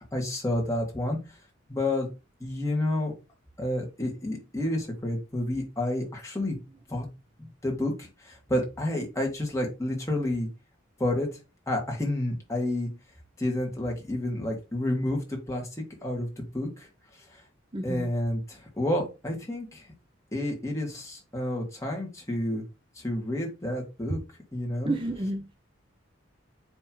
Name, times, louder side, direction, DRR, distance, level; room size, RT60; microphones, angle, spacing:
voice 1, 0.1-1.4 1.7-2.1 2.4-3.1 3.6-6.6 6.9-7.1 7.6-10.5 11.0-11.3 11.7-12.9 13.4-16.9 17.2-17.4 17.8-19.9 20.3-22.6 23.0-24.2 24.5-24.9, left 1 dB, 15° left, 2.1 m, -30 dB
voice 2, 17.7-18.1 24.8-25.5, right 1 dB, 25° right, 0.7 m, -31 dB
9.8 x 3.5 x 3.1 m
head